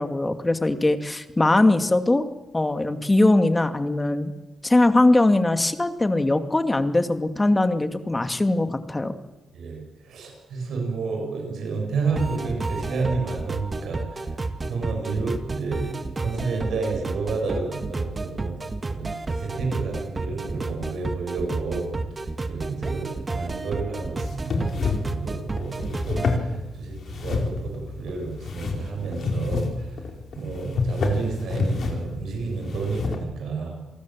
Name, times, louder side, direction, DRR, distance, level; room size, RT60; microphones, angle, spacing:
voice 1, 0.0-2.3 2.5-4.3 4.6-9.1, left 2 dB, 20° left, 8 dB, 2.5 m, -21 dB
voice 2, 9.5-18.6 18.9-19.1 19.4-21.9 22.5-30.0 30.4-33.8, right 4 dB, 80° right, 1 dB, 7.7 m, -30 dB
sound 1, 12.2-26.4, right 3 dB, 35° right, 2.1 m, -31 dB
sound 2, 24.2-33.2, left 4 dB, 65° left, 4.3 m, -29 dB
28.5 x 18.5 x 7.7 m, 1.1 s
cardioid pair, 65°, 0 cm